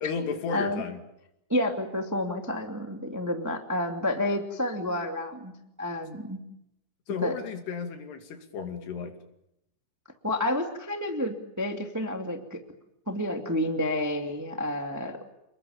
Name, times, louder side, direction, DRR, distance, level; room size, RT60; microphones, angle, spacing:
voice 1, 0.0-1.0 7.1-9.2, left 5 dB, 70° left, 6 dB, 4.4 m, -33 dB
voice 2, 0.5-0.8 1.5-5.5 5.8-6.4 7.2-7.3 10.2-12.6 13.0-15.2, left 1 dB, 10° right, 4 dB, 0.9 m, -30 dB
29.0 x 21.5 x 7.1 m, 0.83 s
omnidirectional pair, 5.1 m